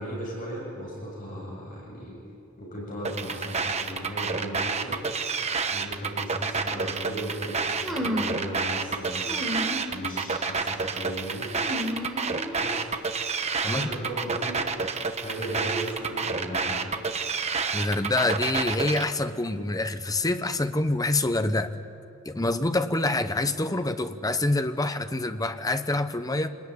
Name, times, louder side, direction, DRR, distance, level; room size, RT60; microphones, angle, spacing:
voice 1, 0.0-2.2 2.6-5.0 5.7-9.3 9.9-11.5 12.6-12.9 13.7-14.6 15.1-16.9, equal, 40° left, 7.8 m, -36 dB
sound 1, 3.0-19.0, right 5 dB, 30° right, 1.2 m, -29 dB
sound 2, 7.8-8.4 9.3-9.9 10.3-10.7 11.5-12.7, equal, ahead, 3.9 m, -32 dB
voice 2, 17.7-21.7 22.2-26.5, left 2 dB, 15° left, 1.0 m, -26 dB
27.0 x 20.5 x 9.8 m
head